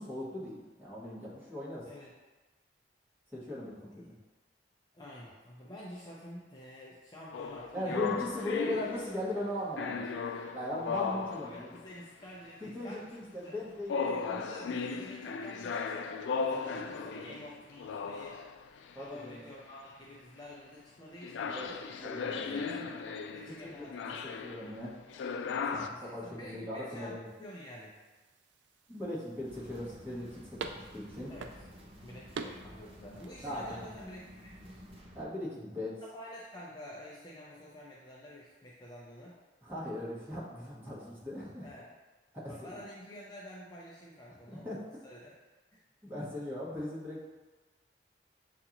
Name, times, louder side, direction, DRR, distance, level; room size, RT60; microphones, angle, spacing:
voice 1, 0.0-1.9 3.3-4.1 7.7-10.2 10.5-11.8 12.7-14.1 16.6-16.8 17.1-17.4 18.9-19.5 21.5-22.7 23.6-23.9 24.2-25.0 25.7-25.8 26.1-27.3 28.9-31.3 33.4-33.8 35.1-36.0 39.6-41.7 42.3-42.8 44.5-44.8 46.0-47.3, left 1 dB, 10° right, -9 dB, 1.3 m, -39 dB
voice 2, 4.9-8.1 11.4-16.1 16.4-18.4 18.9-21.8 22.5-22.9 23.3-24.3 25.6-28.0 31.3-31.5 32.0-34.8 36.1-39.4 41.6-41.9 42.5-44.7 45.0-45.3 45.7-45.8, equal, 25° left, -6 dB, 0.6 m, -49 dB
sound 1, 7.3-9.4 9.8-11.8 12.6-13.1 13.9-19.3 21.2-25.9, left 5 dB, 85° left, 0.3 m, -36 dB
sound 2, 27.2-35.0, right 4 dB, 75° right, 0.3 m, -48 dB
sound 3, 29.4-35.2, equal, 35° right, 0.7 m, -52 dB
6.6 x 2.5 x 2.9 m, 1.2 s
head